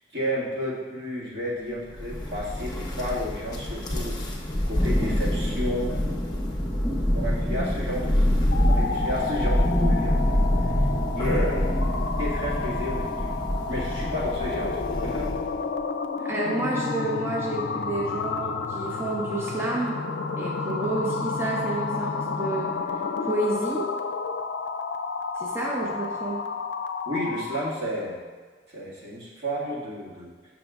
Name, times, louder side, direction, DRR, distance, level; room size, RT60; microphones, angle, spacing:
voice 1, 0.1-4.2 4.7-6.1 7.1-8.3 8.7-10.2 10.6-10.7 11.1-11.7 12.2-13.3 13.7-15.4 16.2-16.3 25.8-25.9 27.1-28.2 28.7-30.3, equal, 80° right, -7 dB, 1.9 m, -32 dB
Thunder, 2.0-15.6, equal, 25° left, 0.7 m, -26 dB
sound 1, 8.4-27.8, left 4 dB, 70° left, 0.4 m, -31 dB
voice 2, 16.2-20.0 20.4-22.7 23.2-23.9 25.4-26.4, right 2 dB, 15° right, -3 dB, 0.6 m, -29 dB
7.5 x 6.1 x 2.4 m, 1.5 s
head